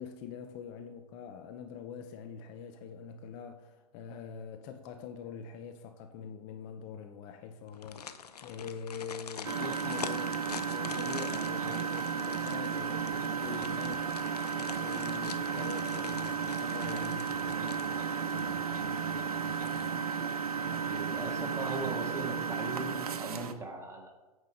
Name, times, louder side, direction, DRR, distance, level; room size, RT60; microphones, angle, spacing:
voice 1, 0.0-14.1 14.4-20.0, left 7 dB, 40° left, 0.8 m, -44 dB
sound 1, 7.7-18.6 19.0-19.1 19.5-20.2 20.5-20.6, left 7 dB, 85° left, 0.7 m, -46 dB
Engine, 9.4-23.5, right 6 dB, 75° right, 0.9 m, -34 dB
voice 2, 20.6-24.1, right 2 dB, 15° right, 1.9 m, -39 dB
9.2 x 5.5 x 5.2 m
hypercardioid pair, 115°, 20 cm